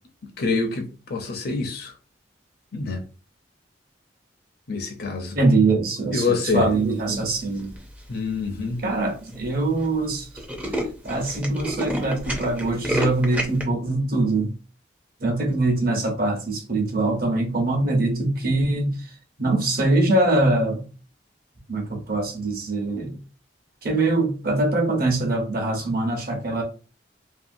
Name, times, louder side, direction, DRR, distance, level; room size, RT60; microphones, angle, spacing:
voice 1, 0.4-1.9 2.7-3.0 4.7-5.4 6.1-6.7 8.1-8.8, left 4 dB, 60° left, 0.7 m, -26 dB
voice 2, 5.3-7.7 8.8-10.3 10.7-14.5 15.2-19.1 19.4-20.9 21.7-23.2 23.8-26.6, right 2 dB, 55° right, 0.9 m, -23 dB
Tools, 7.6-8.0 8.6-8.7 8.9-9.0 9.3-9.5 9.8-9.9 10.1-13.6, equal, 10° right, 0.5 m, -29 dB
2.7 x 2.5 x 2.6 m
head